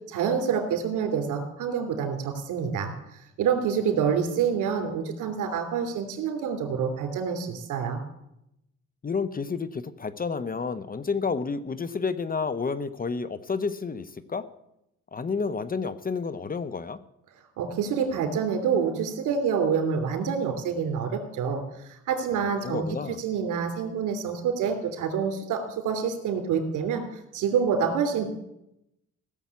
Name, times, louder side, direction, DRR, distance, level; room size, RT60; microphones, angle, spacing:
voice 1, 0.1-2.9 3.4-8.0 17.6-21.6 21.9-22.9 23.2-27.0 27.3-28.3, right 6 dB, 85° right, 5 dB, 3.0 m, -27 dB
voice 2, 9.0-14.4 15.1-17.0 22.6-23.2, left 5 dB, 30° left, 14 dB, 0.8 m, -30 dB
17.0 x 7.1 x 8.3 m, 0.84 s
cardioid pair, 90°, 30 cm